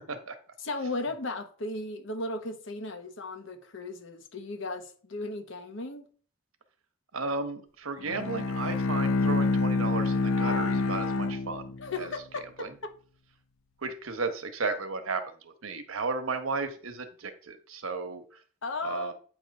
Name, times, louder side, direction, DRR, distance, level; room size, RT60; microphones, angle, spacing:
voice 1, 0.6-6.1 11.8-12.9 18.6-19.1, left 2 dB, 60° left, 1.0 m, -36 dB
voice 2, 7.1-12.1 12.6-12.7 13.8-18.4 18.8-19.1, right 4 dB, 85° right, 1.0 m, -34 dB
Bowed string instrument, 8.0-12.1, left 3 dB, 80° left, 0.6 m, -27 dB
8.4 x 3.1 x 5.2 m
head